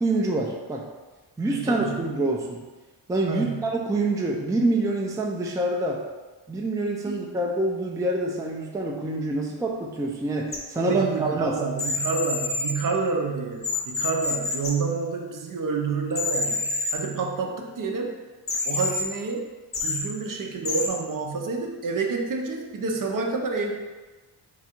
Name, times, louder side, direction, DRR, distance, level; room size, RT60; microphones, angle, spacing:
voice 1, 0.0-0.8 1.4-2.6 3.1-6.0 6.5-11.5, right 2 dB, 10° right, -1 dB, 0.4 m, -26 dB
voice 2, 1.5-2.2 3.3-3.6 7.0-7.2 10.7-18.2 18.6-19.5 19.8-23.7, right 4 dB, 50° right, 2 dB, 0.6 m, -29 dB
sound 1, 10.5-10.6 11.8-12.7 13.6-14.7 16.1-17.0 18.5-19.0 19.7-20.0 20.6-20.9, left 3 dB, 30° left, 0.7 m, -27 dB
4.0 x 2.4 x 4.3 m, 1.2 s
cardioid pair, 100°, 43 cm